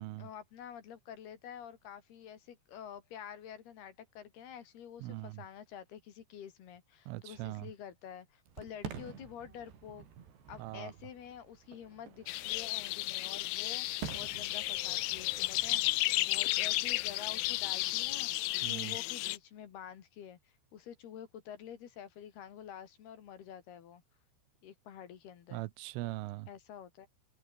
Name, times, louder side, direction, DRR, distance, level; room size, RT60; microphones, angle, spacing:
voice 1, 0.2-10.1 10.5-13.9 14.1-15.8 16.3-18.3 18.6-24.0 24.6-25.6 26.5-27.1, left 9 dB, 60° left, 3.8 m, -48 dB
voice 2, 5.0-5.4 7.1-7.7 10.6-10.9 18.6-19.0 25.5-26.5, right 18 dB, 85° right, 3.5 m, -41 dB
Fireworks, 8.5-18.3, right 8 dB, 60° right, 5.6 m, -50 dB
sound 1, 12.3-19.4, left 20 dB, 85° left, 3.2 m, -33 dB
omnidirectional pair, 5.6 m